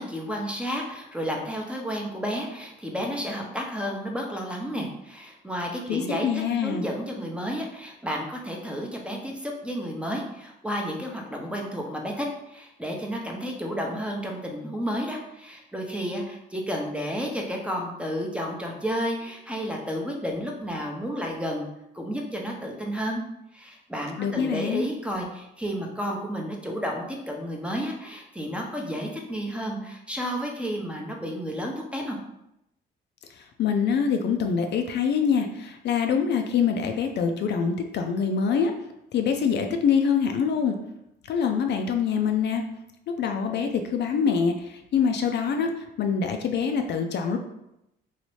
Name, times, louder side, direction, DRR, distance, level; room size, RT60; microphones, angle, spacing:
voice 1, 0.0-6.3 6.6-21.7 21.9-23.2 23.5-32.2, equal, 5° right, 0 dB, 0.6 m, -31 dB
voice 2, 5.9-6.9 24.2-24.9 33.3-38.7 39.1-40.8 41.3-42.6 43.1-47.4, left 6 dB, 60° left, 5 dB, 0.4 m, -25 dB
3.1 x 2.7 x 3.1 m, 0.85 s
cardioid pair, 90°, 20 cm